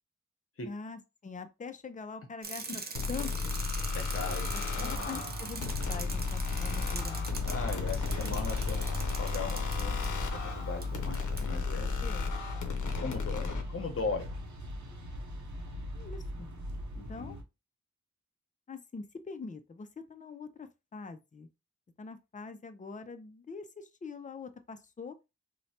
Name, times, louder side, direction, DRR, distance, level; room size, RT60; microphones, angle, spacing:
voice 1, 0.6-2.7 3.1-3.6 4.5-7.3 11.6-12.3 15.9-16.5 17.1-17.4 18.7-21.5 22.0-25.2, left 4 dB, 25° left, 0.4 m, -44 dB
Bicycle, 2.4-10.1 10.8-10.9 11.1-11.4, right 4 dB, 35° right, 0.5 m, -42 dB
sound 1, 2.9-13.6, left 4 dB, 90° left, 0.6 m, -35 dB
sound 2, 3.3-17.4, left 2 dB, 75° right, 0.6 m, -39 dB
voice 2, 3.9-5.2 7.4-8.9 9.2-10.3 10.5-12.0 13.0-14.3 16.9-17.4, left 4 dB, 50° left, 0.8 m, -38 dB
3.0 x 2.1 x 2.7 m
wide cardioid pair, 75°, 29 cm